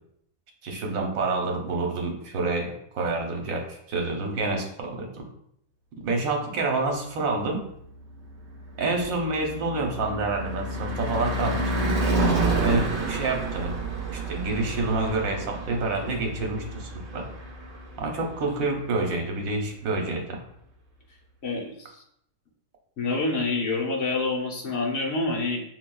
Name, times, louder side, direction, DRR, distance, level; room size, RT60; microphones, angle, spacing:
voice 1, 0.6-5.2 6.0-7.6 8.8-11.9 12.6-13.8 14.1-17.3 18.0-20.4, right 3 dB, 80° right, 2 dB, 1.2 m, -28 dB
Car passing by / Truck / Engine, 8.1-18.3, right 2 dB, 60° right, 1.0 m, -29 dB
voice 2, 12.5-12.8 21.4-22.0 23.0-25.6, left 3 dB, 65° left, -1 dB, 1.1 m, -27 dB
5.9 x 2.3 x 2.3 m, 0.72 s
omnidirectional pair, 1.4 m